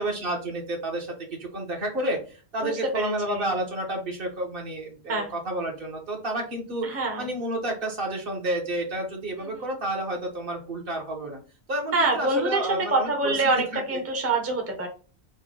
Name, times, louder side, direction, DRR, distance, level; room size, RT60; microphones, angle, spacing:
voice 1, 0.0-6.9 7.2-11.4 11.7-13.4 13.7-14.0, right 1 dB, 60° right, 1 dB, 1.2 m, -30 dB
voice 2, 2.6-3.5 5.1-5.3 6.8-7.3 11.9-14.9, right 2 dB, 15° right, 2 dB, 0.7 m, -26 dB
5.2 x 2.2 x 3.7 m, 0.37 s
omnidirectional pair, 1.1 m